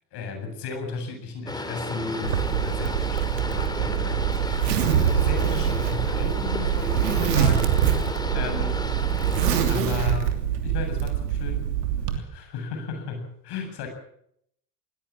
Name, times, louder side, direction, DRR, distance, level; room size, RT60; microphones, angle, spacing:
voice 1, 0.1-8.8 9.7-11.6 12.1-13.9, left 4 dB, 55° left, 5 dB, 7.9 m, -35 dB
Boat Water vehicle, 1.5-9.8, left 1 dB, 10° left, 3.6 m, -33 dB
Zipper (clothing), 2.2-12.2, right 10 dB, 80° right, 3.1 m, -24 dB
20.0 x 19.5 x 7.6 m, 0.71 s
hypercardioid pair, 75°, 48 cm